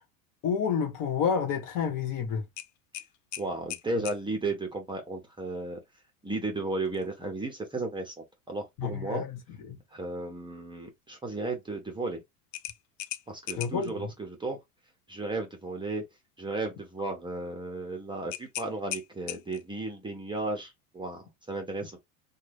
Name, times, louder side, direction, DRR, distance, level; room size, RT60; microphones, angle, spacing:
voice 1, 0.4-2.4 8.8-9.4 9.7-9.8 13.5-14.1, left 7 dB, 50° left, 1.2 m, -29 dB
sound 1, 2.6-4.2 6.8-7.1 7.5-7.6 12.5-13.9 18.3-19.7, left 14 dB, 65° left, 0.5 m, -39 dB
voice 2, 3.4-5.8 6.2-9.3 9.9-12.2 13.3-14.6 15.1-16.0 16.4-22.0, right 2 dB, 10° right, 0.8 m, -34 dB
2.7 x 2.3 x 3.4 m
supercardioid pair, 105°, 42 cm